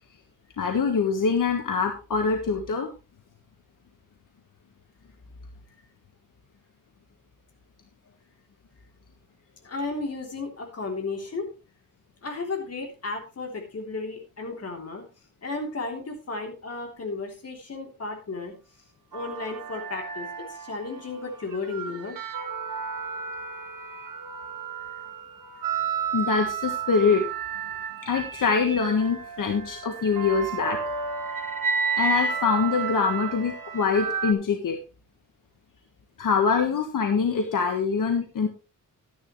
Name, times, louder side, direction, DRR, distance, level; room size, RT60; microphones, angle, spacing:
voice 1, 0.6-2.9 26.1-27.2 28.0-30.8 32.0-34.8 36.2-38.5, left 5 dB, 80° left, 4 dB, 1.6 m, -24 dB
voice 2, 9.6-11.5 12.2-15.0 15.4-18.5 19.1-20.3 20.6-22.2, left 3 dB, 50° left, 2 dB, 3.4 m, -34 dB
sound 1, 19.1-21.0 21.5-34.3, right 6 dB, 80° right, 1.7 m, -32 dB
12.5 x 10.5 x 3.2 m, 0.30 s
wide cardioid pair, 135°, 32 cm